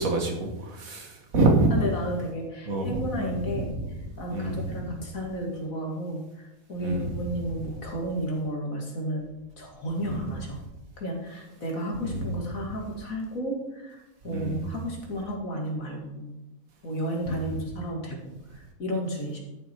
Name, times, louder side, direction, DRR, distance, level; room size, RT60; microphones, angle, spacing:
voice 1, 0.0-1.7 2.7-3.6 4.3-4.7 6.8-7.1 10.0-10.2 12.0-12.3 14.3-14.7 17.3-17.4, right 2 dB, 80° right, 2 dB, 2.0 m, -27 dB
voice 2, 1.7-3.7 4.2-9.3 9.6-10.6 11.0-16.3 16.8-19.4, equal, 75° left, -1 dB, 2.8 m, -32 dB
12.5 x 7.8 x 4.7 m, 0.96 s
omnidirectional pair, 1.4 m